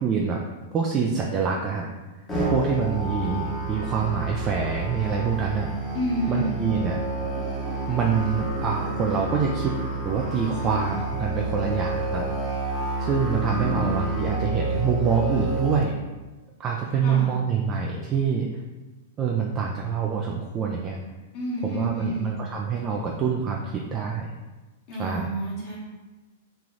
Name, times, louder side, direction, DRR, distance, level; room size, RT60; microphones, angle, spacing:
voice 1, 0.0-0.4 0.7-1.9 2.5-5.7 6.3-7.0 7.9-9.7 10.0-12.3 13.0-15.9 16.6-18.5 19.2-21.0 21.6-24.3 25.0-25.3, right 6 dB, 30° right, -1 dB, 0.4 m, -26 dB
Musical instrument, 2.3-15.8, right 2 dB, 20° left, 1.0 m, -29 dB
voice 2, 5.9-6.6 13.3-14.3 17.0-17.3 21.3-22.3 24.9-25.8, equal, 45° left, -5 dB, 1.3 m, -30 dB
3.3 x 2.3 x 3.8 m, 1.2 s
hypercardioid pair, 105°, 0 cm